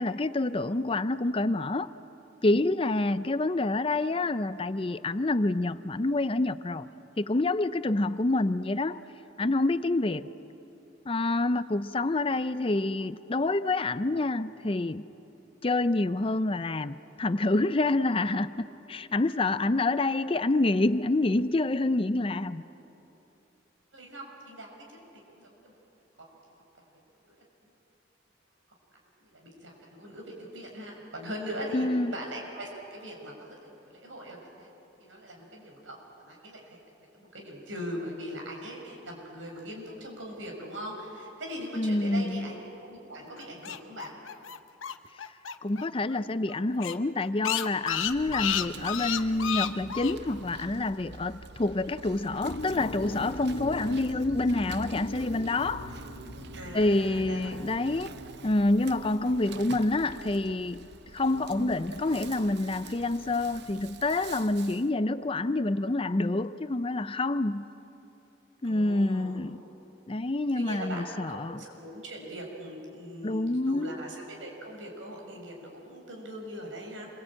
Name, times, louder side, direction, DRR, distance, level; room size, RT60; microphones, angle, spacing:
voice 1, 0.0-1.9 2.4-6.9 7.2-9.0 9.4-10.3 11.1-15.0 15.6-22.6 31.7-32.1 41.8-42.5 45.6-55.9 56.7-58.1 58.4-60.9 61.1-67.7 68.6-69.6 70.1-71.6 73.2-73.9, left 2 dB, 30° left, 0.5 m, -27 dB
voice 2, 23.9-25.7 26.2-26.9 27.3-27.4 27.6-27.7 29.2-34.7 35.0-36.0 36.2-44.2 56.5-57.5 68.6-69.4 70.1-70.2 70.5-77.1, equal, 80° right, 6.6 m, -41 dB
sound 1, 43.4-45.8 46.1-46.2 46.5-46.6 46.8-50.1, left 10 dB, 90° left, 0.9 m, -31 dB
Insect, 47.9-64.9, right 3 dB, 60° right, 0.9 m, -46 dB
sound 2, 52.4-58.5, left 1 dB, 55° left, 1.0 m, -41 dB
27.5 x 23.5 x 8.9 m
head